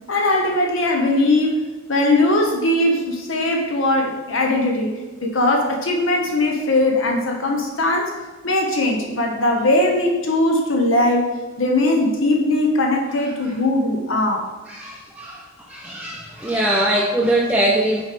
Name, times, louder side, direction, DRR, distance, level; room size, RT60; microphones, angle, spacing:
voice 1, 0.1-1.6 1.9-8.2 8.4-14.5, left 1 dB, 65° left, 1 dB, 0.9 m, -20 dB
voice 2, 14.7-18.0, right 1 dB, 5° right, -3 dB, 0.6 m, -22 dB
6.3 x 4.5 x 5.0 m, 1.2 s
head